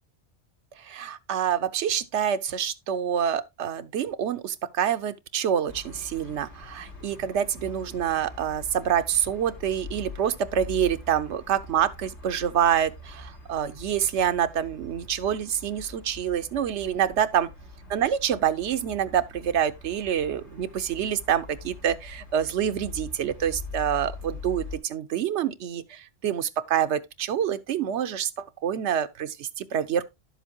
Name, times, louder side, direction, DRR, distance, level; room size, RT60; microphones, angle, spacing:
voice 1, 0.8-17.5 17.9-30.1, right 9 dB, 90° right, 1.0 m, -27 dB
sound 1, 5.7-24.8, left 3 dB, 85° left, 4.1 m, -43 dB
11.0 x 7.2 x 2.8 m
omnidirectional pair, 1.1 m